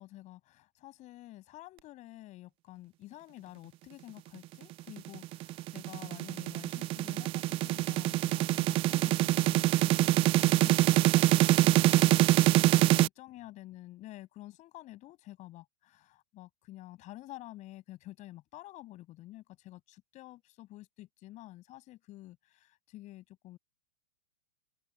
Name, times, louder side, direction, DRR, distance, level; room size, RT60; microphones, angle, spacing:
voice 1, 0.0-23.6, left 16 dB, 35° left, 6.7 m, -49 dB
sound 1, 5.0-13.1, right 17 dB, 25° right, 0.4 m, -25 dB
open air
hypercardioid pair, 120°, 21 cm